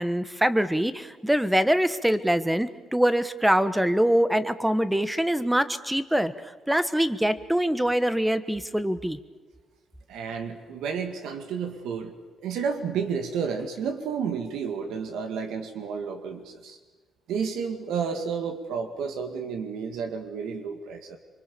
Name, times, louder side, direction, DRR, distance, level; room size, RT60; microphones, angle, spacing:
voice 1, 0.0-6.3 6.7-9.2, equal, 5° right, 13 dB, 1.3 m, -24 dB
voice 2, 10.1-12.1 12.4-16.8 17.3-21.2, right 6 dB, 85° right, 6 dB, 2.1 m, -31 dB
26.5 x 24.0 x 7.0 m, 1.3 s
cardioid pair, 90°, 0 cm